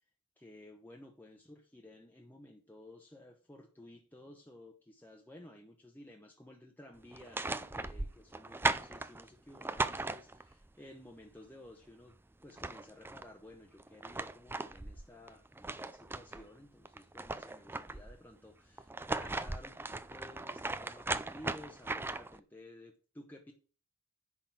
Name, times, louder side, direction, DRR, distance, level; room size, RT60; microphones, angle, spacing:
voice 1, 0.4-12.2 12.4-23.5, left 1 dB, 10° left, 1 dB, 1.0 m, -54 dB
sound 1, 7.1-10.7 12.1-12.2 12.4-13.3 13.8-16.5 16.9-18.2 18.8-22.4, right 2 dB, 10° right, 0.4 m, -38 dB
10.0 x 3.9 x 7.5 m, 0.37 s
head